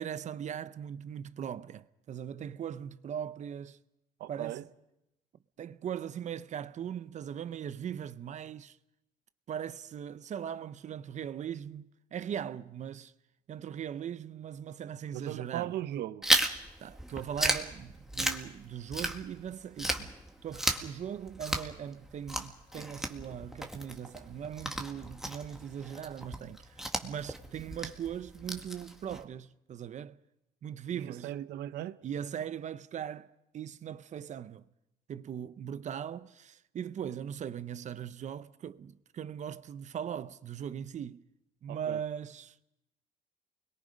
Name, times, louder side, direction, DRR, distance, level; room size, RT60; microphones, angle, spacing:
voice 1, 0.0-3.8 4.3-4.7 5.6-8.8 9.5-13.1 13.5-15.7 16.8-20.1 20.4-30.2 30.6-31.3 32.0-34.7 35.1-41.2 41.6-42.6, right 9 dB, 45° right, 0.7 m, -39 dB
voice 2, 4.2-4.6 15.1-16.3 30.9-32.0 41.7-42.0, right 12 dB, 75° right, 0.8 m, -38 dB
Chewing mastication, 16.2-19.5 19.8-29.2, right 1 dB, 5° right, 1.7 m, -34 dB
28.5 x 21.5 x 5.2 m
cardioid pair, 110°, 17 cm